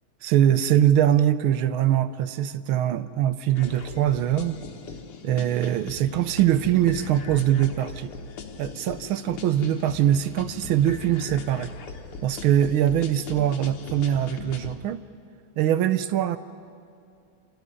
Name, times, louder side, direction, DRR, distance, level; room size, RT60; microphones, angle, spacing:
voice 1, 0.2-4.6 5.2-8.1 8.6-11.7 12.2-15.0 15.6-16.4, right 11 dB, 75° right, 13 dB, 1.5 m, -22 dB
sound 1, 3.5-14.8, left 5 dB, 85° left, 2.1 m, -39 dB
28.0 x 12.5 x 9.9 m, 2.4 s
omnidirectional pair, 2.4 m